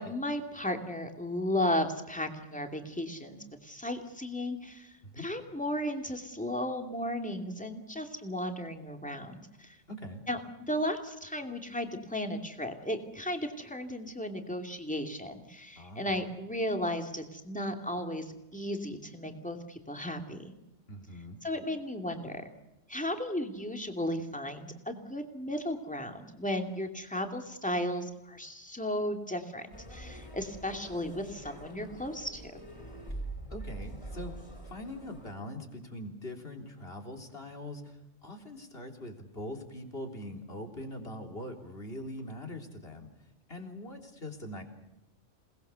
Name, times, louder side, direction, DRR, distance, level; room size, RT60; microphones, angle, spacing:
voice 1, 0.0-4.9 5.2-9.8 10.3-10.4 10.7-18.2 18.5-20.6 21.4-22.5 22.9-32.6, left 1 dB, 5° left, 4 dB, 2.6 m, -35 dB
voice 2, 9.9-10.2 15.8-16.2 20.9-21.4 33.5-34.3 34.7-43.1 43.5-44.6, left 1 dB, 50° left, 3 dB, 3.7 m, -42 dB
sound 1, 29.7-35.4, right 2 dB, 25° left, 4.8 m, -44 dB
29.0 x 20.0 x 7.0 m, 0.97 s
omnidirectional pair, 1.3 m